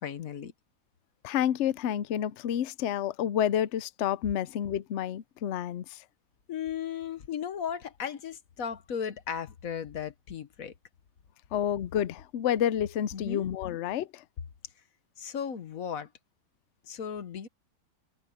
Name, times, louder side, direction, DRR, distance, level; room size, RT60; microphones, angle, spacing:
voice 1, 0.0-0.5 6.5-10.7 13.1-13.5 15.2-16.1 16.8-17.5, left 8 dB, 55° left, 1.4 m, -36 dB
voice 2, 1.2-6.0 11.5-14.2, left 10 dB, 70° left, 0.6 m, -29 dB
omnidirectional pair, 1.9 m